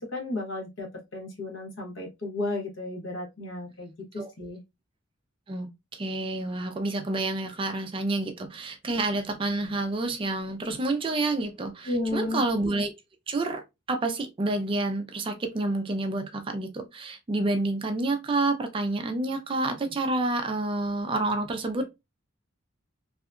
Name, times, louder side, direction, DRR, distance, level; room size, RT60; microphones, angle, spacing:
voice 1, 0.0-4.6 11.8-12.4, left 2 dB, 65° left, 1.0 m, -33 dB
voice 2, 5.9-12.9 13.3-21.9, right 2 dB, 25° right, 0.3 m, -29 dB
2.7 x 2.2 x 2.4 m
head